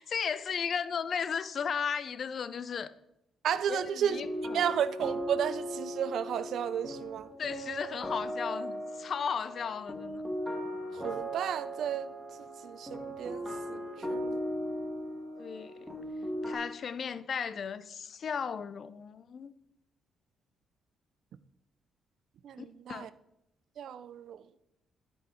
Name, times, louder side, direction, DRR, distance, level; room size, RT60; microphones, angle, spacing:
voice 1, 0.0-2.9 3.7-4.7 7.4-10.2 15.4-15.9 16.5-19.5 22.9-23.1, left 6 dB, 50° left, 0.5 m, -35 dB
voice 2, 3.4-4.2 4.5-7.3 10.9-12.1 12.4-14.4 22.4-23.1 23.8-24.4, right 9 dB, 70° right, 0.5 m, -33 dB
sound 1, 4.1-16.5, equal, 5° right, 1.8 m, -38 dB
11.5 x 5.5 x 4.4 m
cardioid pair, 90°, 0 cm